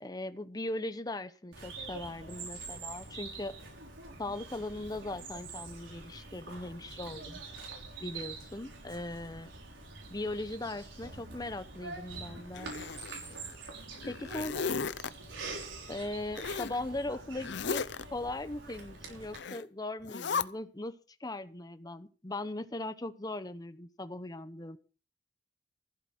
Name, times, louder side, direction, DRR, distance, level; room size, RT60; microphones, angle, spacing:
voice 1, 0.0-3.5 4.2-7.4 8.0-9.5 10.1-12.7 14.0-14.5 15.9-17.8 18.1-24.8, left 2 dB, 20° left, 11 dB, 0.9 m, -39 dB
Bird vocalization bird call bird song, 1.5-19.4, right 3 dB, 85° right, 5.5 m, -45 dB
Zipper (clothing), 12.5-13.5 14.0-15.1 16.3-16.8 17.4-18.0 19.3-19.6 20.0-20.4, left 5 dB, 65° left, 0.6 m, -35 dB
15.0 x 8.2 x 6.0 m, 0.36 s
head